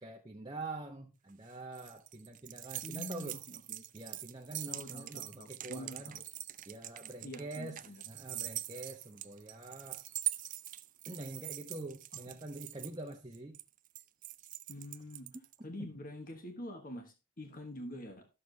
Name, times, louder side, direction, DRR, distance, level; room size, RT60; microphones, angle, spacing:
voice 1, 0.0-3.4 3.9-6.2 6.7-10.0 11.1-13.6 15.8-15.9, right 2 dB, 20° right, 0 dB, 0.8 m, -45 dB
sound 1, 1.3-15.5, right 15 dB, 40° right, 0.4 m, -43 dB
voice 2, 2.8-3.9 4.7-6.2 7.2-8.0 12.3-12.4 14.7-18.3, left 1 dB, 40° left, 5 dB, 1.2 m, -46 dB
12.5 x 6.7 x 3.2 m, 0.29 s
head